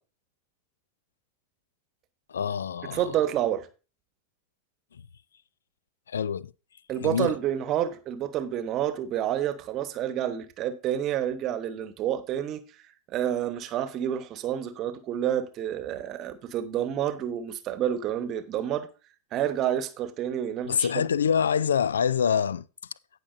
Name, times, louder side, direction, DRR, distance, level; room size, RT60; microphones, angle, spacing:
voice 1, 2.3-3.0 6.1-6.5 7.0-7.3 20.6-22.6, left 7 dB, 70° left, 0.3 m, -25 dB
voice 2, 2.9-3.7 6.9-12.6 13.1-18.9 19.3-21.0, right 10 dB, 40° right, 1.1 m, -29 dB
17.5 x 5.9 x 2.6 m
figure-of-eight pair, 85°, 0 cm